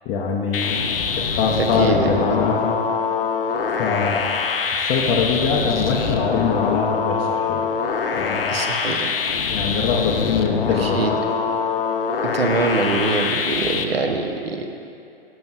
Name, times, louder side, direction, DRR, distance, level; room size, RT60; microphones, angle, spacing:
voice 1, 0.1-0.8 1.2-2.8 3.8-4.3 4.7-7.7 8.1-8.4 9.5-11.2, left 5 dB, 20° left, -2 dB, 0.4 m, -23 dB
sound 1, 0.5-13.8, left 5 dB, 70° left, 0.6 m, -24 dB
voice 2, 1.5-2.0 8.5-9.2 10.8-11.1 12.2-14.7, right 3 dB, 80° right, 4 dB, 0.8 m, -24 dB
10.5 x 6.2 x 2.3 m, 2.6 s
figure-of-eight pair, 105°, 30 cm